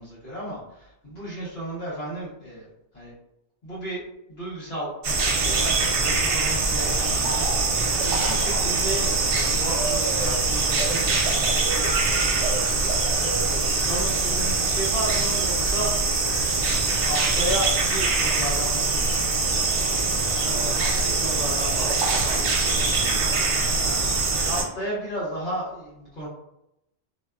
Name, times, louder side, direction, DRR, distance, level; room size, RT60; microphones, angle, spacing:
voice 1, 0.0-3.1 3.6-4.0 4.3-4.9 5.4-16.1 16.4-19.6 23.8-26.3, right 1 dB, 70° left, -10 dB, 1.3 m, -34 dB
sound 1, 5.0-24.6, right 3 dB, 80° right, 0.9 m, -23 dB
voice 2, 20.4-23.5, right 1 dB, 35° left, -9 dB, 1.4 m, -36 dB
2.8 x 2.2 x 2.3 m, 0.84 s
omnidirectional pair, 1.1 m